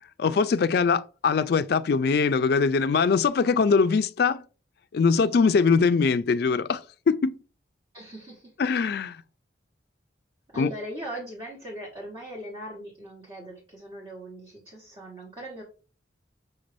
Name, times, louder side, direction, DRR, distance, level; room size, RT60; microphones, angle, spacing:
voice 1, 0.2-4.4 4.9-7.4 8.6-9.2 10.6-10.7, left 5 dB, 55° left, 0.3 m, -22 dB
voice 2, 7.9-8.5 10.5-15.6, equal, 25° right, 1.1 m, -39 dB
5.9 x 2.5 x 3.3 m
head